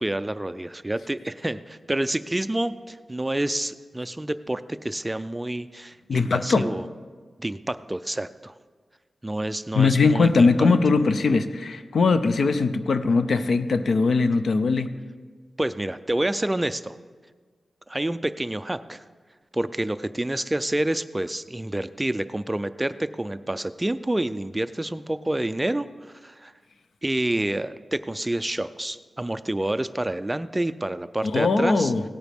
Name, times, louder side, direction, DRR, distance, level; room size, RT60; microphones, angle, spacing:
voice 1, 0.0-6.9 7.4-8.6 9.2-10.7 15.6-17.0 17.9-19.0 19.5-26.5 27.0-31.9, right 1 dB, 15° right, 12 dB, 0.3 m, -28 dB
voice 2, 6.1-6.7 9.7-15.0 31.3-32.0, left 4 dB, 75° left, 10 dB, 0.6 m, -20 dB
17.0 x 9.1 x 3.5 m, 1.5 s
wide cardioid pair, 140°, 0 cm